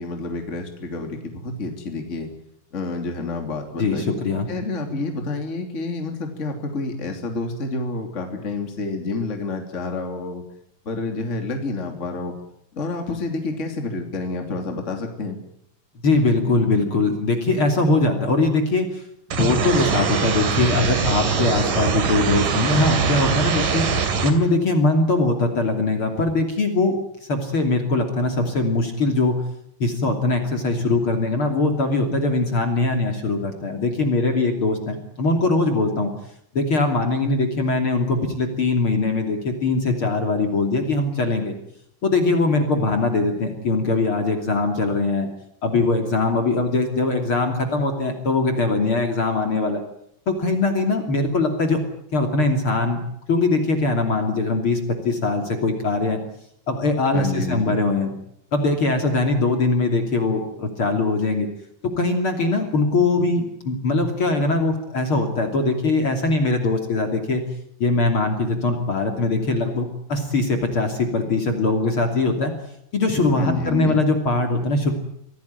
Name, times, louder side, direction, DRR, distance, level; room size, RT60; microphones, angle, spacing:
voice 1, 0.0-2.3 2.7-4.1 4.5-10.4 10.8-12.4 12.7-15.4 57.1-57.7 73.3-74.0, left 3 dB, 20° left, 4 dB, 3.1 m, -29 dB
voice 2, 3.8-4.5 16.0-19.0 19.3-23.9 24.2-27.0 27.3-29.4 29.8-36.1 36.5-41.6 42.0-45.3 45.6-49.8 50.3-51.8 52.1-53.0 53.3-56.2 56.7-58.1 58.5-61.5 62.0-67.4 67.8-72.5 72.9-74.9, left 3 dB, 40° left, 5 dB, 3.5 m, -21 dB
sound 1, 19.3-24.3, right 6 dB, 75° right, 4.2 m, -22 dB
25.0 x 17.5 x 9.4 m, 0.73 s
omnidirectional pair, 3.8 m